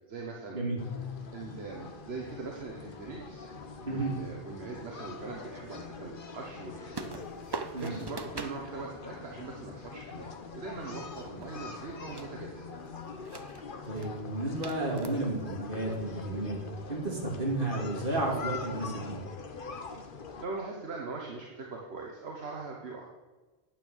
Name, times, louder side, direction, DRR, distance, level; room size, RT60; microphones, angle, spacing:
voice 1, 0.1-0.6 1.3-3.5 3.8-7.1 7.8-12.6 20.4-23.2, right 3 dB, 75° right, -1 dB, 1.6 m, -41 dB
sound 1, 0.8-20.5, left 5 dB, 55° left, 1.2 m, -43 dB
voice 2, 3.8-4.2 7.7-7.9 13.9-16.6 16.9-19.2, right 2 dB, 55° right, -2 dB, 3.0 m, -32 dB
sound 2, 6.9-8.6 11.0-11.9 12.1-12.4 13.1-13.7 14.0-14.1 14.6-15.5, right 4 dB, 30° right, 0.6 m, -41 dB
9.8 x 9.1 x 6.3 m, 1.3 s
omnidirectional pair, 1.1 m